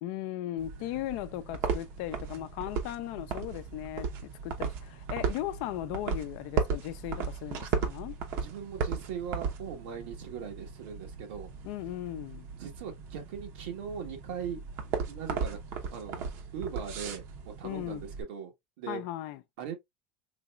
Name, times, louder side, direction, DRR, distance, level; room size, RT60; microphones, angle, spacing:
voice 1, 0.0-8.2 11.6-12.5 17.6-18.0 18.9-19.4, left 13 dB, 70° left, 0.5 m, -37 dB
sound 1, 0.6-18.2, right 6 dB, 60° right, 0.8 m, -36 dB
voice 2, 8.4-11.5 12.6-15.6 15.9-16.3 16.5-19.0 19.6-19.7, right 7 dB, 85° right, 1.2 m, -40 dB
4.0 x 3.0 x 2.3 m
supercardioid pair, 120°, 5 cm